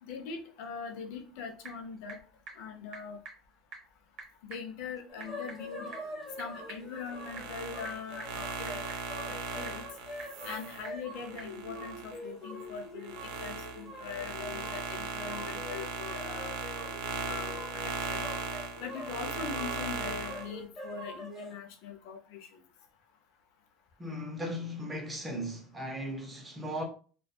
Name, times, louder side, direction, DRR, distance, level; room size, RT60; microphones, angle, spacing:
voice 1, 0.0-2.2 2.6-3.2 4.4-5.9 6.4-8.8 9.3-9.9 10.4-16.5 17.3-18.3 18.8-22.6, left 6 dB, 65° left, 0.5 m, -42 dB
Typing / Telephone, 1.1-11.6, right 4 dB, 45° right, 0.8 m, -52 dB
sound 1, 5.1-21.5, left 1 dB, 20° left, 0.9 m, -44 dB
sound 2, 7.1-12.2 12.6-20.5, right 4 dB, 75° right, 0.5 m, -38 dB
voice 2, 24.0-26.8, equal, 10° right, 0.4 m, -37 dB
2.6 x 2.2 x 2.2 m
cardioid pair, 175°, 0 cm